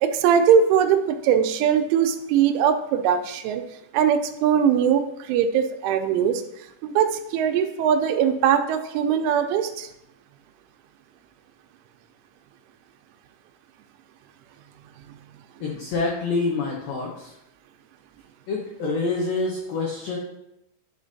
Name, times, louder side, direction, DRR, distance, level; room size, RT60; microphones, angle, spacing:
voice 1, 0.0-3.6 3.9-6.4 6.8-9.9, right 8 dB, 90° right, 7 dB, 3.1 m, -21 dB
voice 2, 15.6-17.3 18.5-20.2, left 3 dB, 80° left, -2 dB, 2.1 m, -26 dB
10.5 x 5.0 x 2.7 m, 0.83 s
omnidirectional pair, 5.4 m